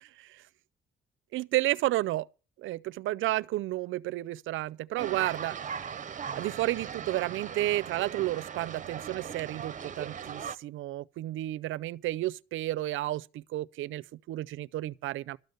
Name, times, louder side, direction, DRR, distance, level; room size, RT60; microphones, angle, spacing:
voice 1, 0.0-0.4 1.3-2.3 2.6-5.6 6.4-15.4, right 16 dB, 80° right, 0.5 m, -32 dB
sound 1, 5.0-10.6, right 7 dB, 40° right, 0.8 m, -39 dB
13.0 x 7.8 x 6.7 m
cardioid pair, 90°, 20 cm